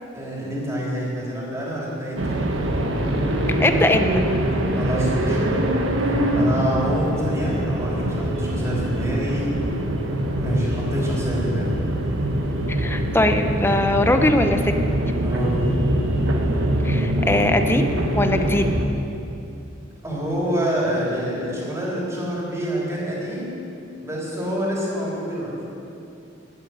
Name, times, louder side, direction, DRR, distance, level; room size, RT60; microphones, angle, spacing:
voice 1, 0.1-2.4 4.7-5.4 6.0-9.5 10.4-11.7 15.2-15.7 20.0-23.6 24.0-25.5, equal, 15° right, -5 dB, 3.5 m, -27 dB
sound 1, 2.2-18.9, right 1 dB, 85° right, 1.3 m, -23 dB
voice 2, 3.5-4.2 12.7-14.6 16.8-18.6, left 1 dB, 10° left, 6 dB, 0.7 m, -21 dB
12.5 x 8.3 x 9.3 m, 2.6 s
head